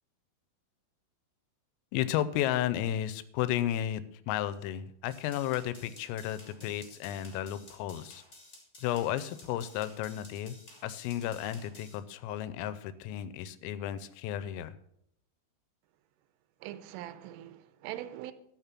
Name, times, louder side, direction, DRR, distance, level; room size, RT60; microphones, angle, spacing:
voice 1, 1.9-8.2 8.8-10.6 10.8-14.8, left 12 dB, 90° left, 3.3 m, -33 dB
sound 1, 5.1-12.0, left 2 dB, 25° left, 2.2 m, -54 dB
voice 2, 16.6-18.3, right 13 dB, 85° right, 3.2 m, -42 dB
12.5 x 6.3 x 6.0 m
omnidirectional pair, 5.8 m